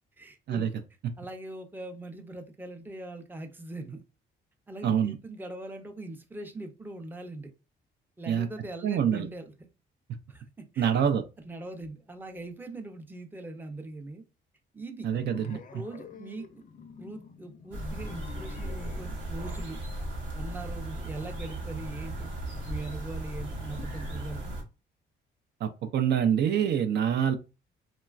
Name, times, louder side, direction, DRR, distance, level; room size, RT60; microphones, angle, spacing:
voice 1, 0.2-0.7 1.2-4.0 4.7-7.5 8.2-9.5 10.3-10.9 11.4-14.2 14.7-15.1 15.7-16.5 17.0-19.8 20.3-22.3 22.7-24.6, right 2 dB, 10° right, 0.5 m, -41 dB
voice 2, 4.8-5.1 8.3-8.5 8.8-9.3 10.8-11.2 15.0-15.8 25.6-27.4, right 8 dB, 60° right, 0.4 m, -26 dB
sound 1, 15.1-19.1, left 5 dB, 45° left, 0.5 m, -47 dB
sound 2, 17.7-24.6, right 1 dB, 85° right, 0.9 m, -36 dB
3.0 x 2.2 x 2.3 m
cardioid pair, 90°, 20 cm